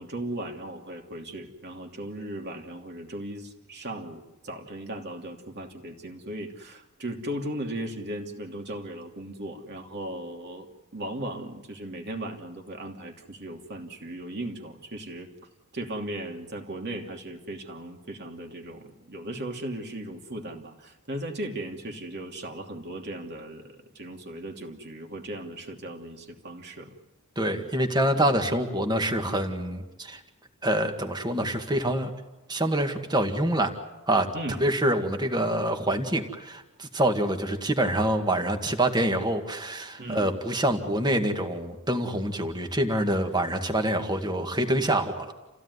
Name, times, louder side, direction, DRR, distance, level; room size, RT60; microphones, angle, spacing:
voice 1, 0.0-10.7 10.9-15.3 15.7-26.9 28.1-28.4 34.3-34.7 40.0-40.4, right 1 dB, 50° right, 3 dB, 2.9 m, -37 dB
voice 2, 27.4-30.2 30.6-32.1 32.5-33.7 34.1-34.3 34.6-45.3, right 1 dB, 20° right, 5 dB, 2.0 m, -26 dB
29.0 x 16.5 x 9.7 m, 1.1 s
head